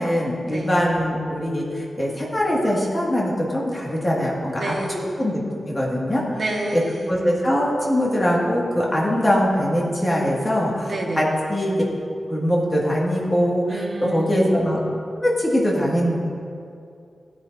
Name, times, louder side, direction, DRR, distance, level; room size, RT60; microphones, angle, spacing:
voice 1, 0.0-4.7 5.2-5.4 5.7-6.4 6.7-6.8 7.1-11.8 12.3-14.8 15.2-16.2, equal, 20° left, -4 dB, 1.9 m, -22 dB
voice 2, 4.6-5.2 6.3-7.0 10.8-11.2 13.7-14.4, right 2 dB, 45° right, -1 dB, 1.4 m, -29 dB
16.0 x 9.3 x 2.6 m, 2.3 s
wide cardioid pair, 150°, 0 cm